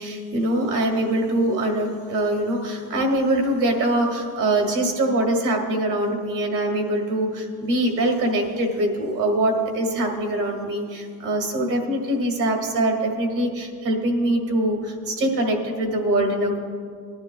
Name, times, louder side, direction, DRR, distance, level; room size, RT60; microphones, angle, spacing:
voice 1, 0.0-16.6, right 1 dB, 55° right, 1 dB, 2.0 m, -23 dB
19.0 x 11.0 x 2.3 m, 2.1 s
cardioid pair, 155°, 36 cm